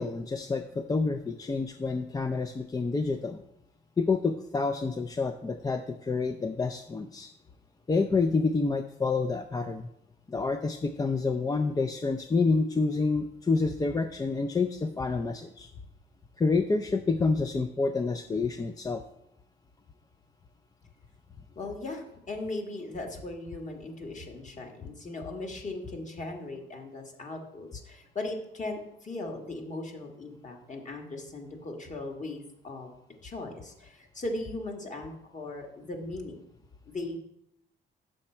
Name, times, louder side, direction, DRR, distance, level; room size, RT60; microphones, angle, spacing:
voice 1, 0.0-3.4 4.0-7.3 7.9-9.9 10.3-15.7 16.4-19.0, left 4 dB, 20° left, 7 dB, 0.4 m, -28 dB
voice 2, 21.5-32.9 33.2-36.4 36.9-37.2, left 2 dB, 40° left, 2 dB, 1.5 m, -38 dB
6.4 x 5.9 x 4.3 m, 0.80 s
cardioid pair, 90°, 20 cm